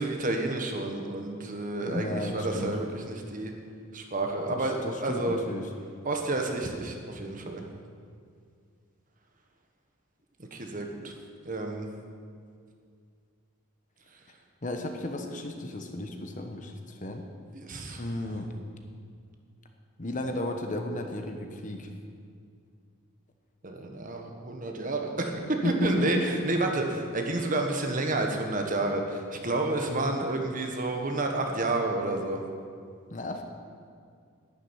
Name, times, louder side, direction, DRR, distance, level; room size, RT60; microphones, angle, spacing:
voice 1, 0.0-3.5 3.9-5.4 6.0-7.7 10.4-11.1 11.4-11.9 17.5-18.0 23.6-32.4, right 2 dB, 35° right, 3 dB, 1.3 m, -30 dB
voice 2, 1.9-2.8 4.5-5.7 14.6-17.2 18.0-18.5 20.0-21.9 25.6-26.3 29.9-30.3 33.1-33.4, left 1 dB, 35° left, 5 dB, 1.0 m, -34 dB
11.0 x 7.6 x 9.2 m, 2.2 s
head